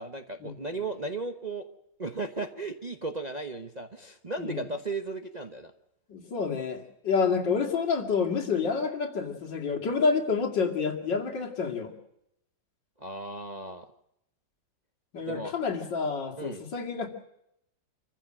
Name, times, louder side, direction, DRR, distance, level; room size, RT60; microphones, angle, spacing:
voice 1, 0.0-1.7 2.0-5.7 13.0-13.9 15.3-15.5 16.4-16.6, right 3 dB, 30° right, 6 dB, 1.0 m, -35 dB
voice 2, 6.1-11.9 15.1-17.1, left 5 dB, 70° left, 3 dB, 3.0 m, -28 dB
26.5 x 15.5 x 7.7 m, 0.79 s
omnidirectional pair, 2.0 m